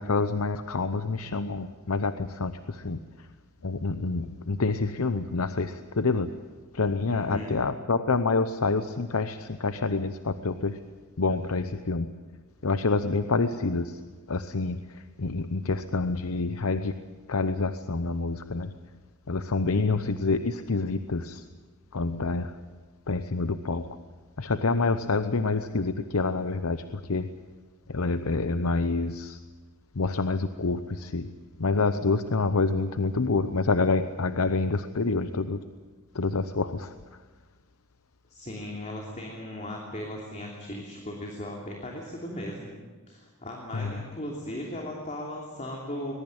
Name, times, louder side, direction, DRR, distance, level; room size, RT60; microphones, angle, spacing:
voice 1, 0.0-3.0 3.6-6.4 6.7-10.8 11.2-12.1 12.6-14.0 14.3-17.0 17.3-18.7 19.3-21.4 21.9-22.6 23.1-24.0 24.4-27.3 27.9-29.4 29.9-31.3 31.6-35.6 36.1-36.9 43.7-44.1, left 3 dB, 75° left, 11 dB, 0.8 m, -27 dB
voice 2, 7.1-7.6 38.3-42.7 43.1-46.1, left 1 dB, 30° left, 0 dB, 3.0 m, -37 dB
21.5 x 21.0 x 8.8 m, 1.4 s
head